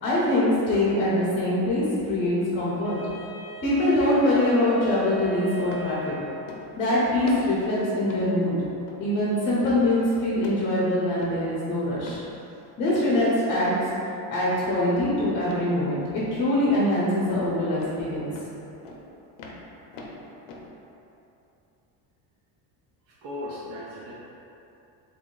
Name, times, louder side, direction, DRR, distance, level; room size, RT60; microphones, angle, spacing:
voice 1, 0.0-3.0 3.6-6.2 6.8-8.6 9.0-12.2 12.8-13.7 14.3-18.3, left 1 dB, 25° left, -8 dB, 0.7 m, -23 dB
Wind instrument woodwind instrument, 2.8-6.7, left 4 dB, 25° right, 1.1 m, -39 dB
sound 1, 4.8-5.1 5.7-5.9 6.5-6.8 7.3-7.6 8.1-8.3 8.8-9.1 9.6-9.8 10.4-10.7 11.2-11.4 12.0-12.3 12.9-13.2 13.8-14.0 14.6-14.9 15.5-15.7 17.2-17.5 17.8-18.0 18.3-18.5 18.8-19.1 19.4-20.7, left 3 dB, 65° left, 0.7 m, -42 dB
voice 2, 23.2-24.1, left 1 dB, 50° right, -6 dB, 0.5 m, -36 dB
3.5 x 2.7 x 3.7 m, 2.8 s
cardioid pair, 165°, 44 cm